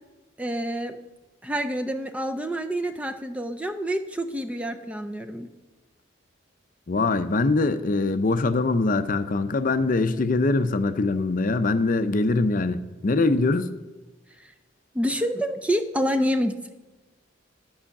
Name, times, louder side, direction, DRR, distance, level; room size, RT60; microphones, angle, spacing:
voice 1, 0.4-1.0 1.4-5.5 14.4-14.5 14.9-16.6, equal, 5° right, 0.4 m, -27 dB
voice 2, 6.9-13.7, left 3 dB, 45° left, 0.5 m, -23 dB
11.5 x 5.6 x 7.0 m
head